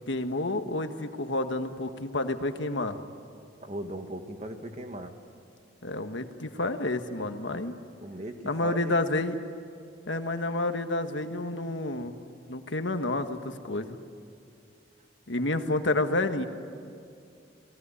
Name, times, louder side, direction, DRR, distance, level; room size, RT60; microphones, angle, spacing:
voice 1, 0.1-3.0 5.8-7.7 8.4-9.4 10.1-12.1 12.5-14.0 15.3-16.5, left 2 dB, 80° left, 7 dB, 1.5 m, -29 dB
voice 2, 3.6-5.1 8.0-8.4 8.6-8.9, right 1 dB, 35° right, 5 dB, 1.8 m, -38 dB
29.5 x 19.5 x 9.9 m, 2.5 s
head